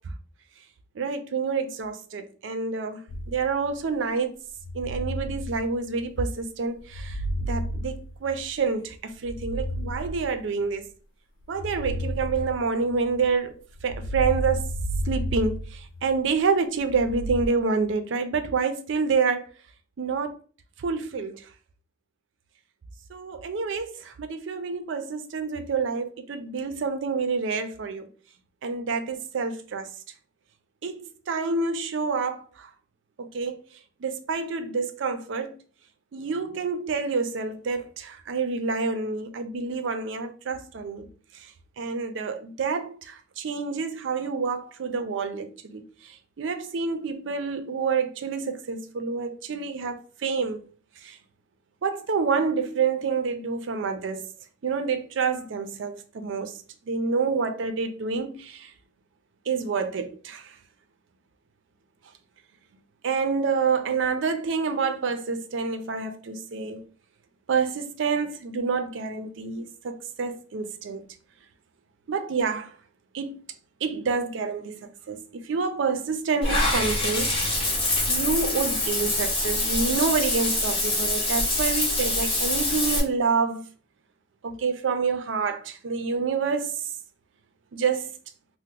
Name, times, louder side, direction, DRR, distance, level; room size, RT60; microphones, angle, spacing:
voice 1, 1.0-3.0 3.3-4.3 4.7-7.2 7.5-10.8 11.5-13.5 13.8-14.7 15.1-19.4 20.0-20.3 20.8-21.4 23.1-28.1 28.6-29.9 30.8-32.7 33.2-33.6 34.0-35.5 36.1-41.1 41.8-45.8 46.4-50.6 51.0-51.2 51.8-54.2 54.6-56.5 56.9-58.7 59.5-60.5 63.0-66.8 67.5-71.0 72.1-72.7 73.1-73.4 73.8-75.2 75.4-77.3 78.1-83.6 84.4-86.8 87.7-88.1, right 5 dB, 65° right, 0.4 m, -28 dB
sound 1, 3.1-3.8 4.6-6.2 6.8-8.6 9.1-10.7 11.5-13.2 13.7-16.3 16.9-17.5, equal, 80° left, 0.3 m, -32 dB
Water / Bathtub (filling or washing), 76.4-83.0, left 2 dB, 30° left, 1.1 m, -25 dB
2.8 x 2.0 x 3.6 m
head